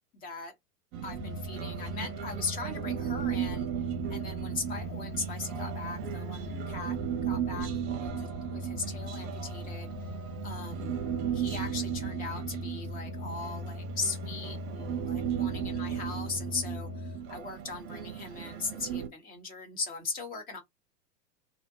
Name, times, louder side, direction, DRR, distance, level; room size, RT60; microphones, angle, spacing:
voice 1, 0.1-0.5 1.0-7.0 7.3-7.7 8.0-10.1 10.4-10.9 11.3-20.6, left 4 dB, 20° left, 0.6 m, -39 dB
Human voice, 0.9-19.1, right 9 dB, 40° right, 0.6 m, -36 dB
sound 1, 1.1-17.2, left 3 dB, 70° left, 1.2 m, -41 dB
2.6 x 2.1 x 2.6 m
hypercardioid pair, 100°, 49 cm